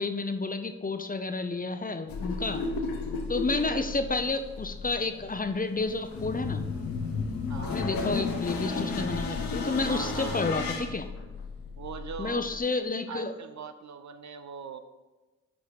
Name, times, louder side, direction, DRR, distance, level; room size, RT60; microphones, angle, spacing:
voice 1, 0.0-2.6 3.3-6.6 7.7-11.0 12.2-13.3, left 3 dB, 25° left, 8 dB, 0.8 m, -30 dB
sound 1, 2.1-12.6, left 4 dB, 85° left, 0.9 m, -33 dB
voice 2, 7.5-7.8 9.9-10.5 11.8-12.5 13.1-14.8, right 6 dB, 55° right, 10 dB, 0.7 m, -40 dB
9.7 x 4.7 x 4.1 m, 1.2 s
supercardioid pair, 40°, 34 cm